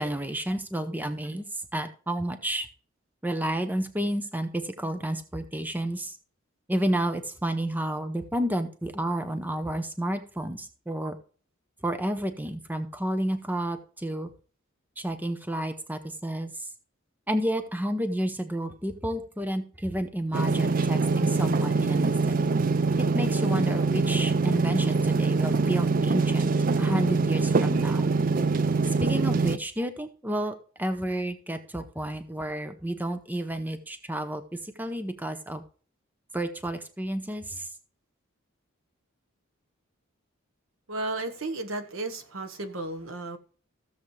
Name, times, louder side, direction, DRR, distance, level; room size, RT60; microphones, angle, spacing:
voice 1, 0.0-1.4 1.7-2.7 3.2-6.2 6.7-11.2 11.8-14.3 15.0-16.5 17.3-22.4 23.0-26.5 26.8-28.1 28.9-35.6 36.3-37.7, right 1 dB, 10° right, 0.7 m, -31 dB
sound 1, 20.3-29.6, right 4 dB, 40° right, 0.4 m, -24 dB
voice 2, 40.9-43.4, right 2 dB, 75° right, 1.2 m, -33 dB
15.0 x 7.1 x 3.2 m
head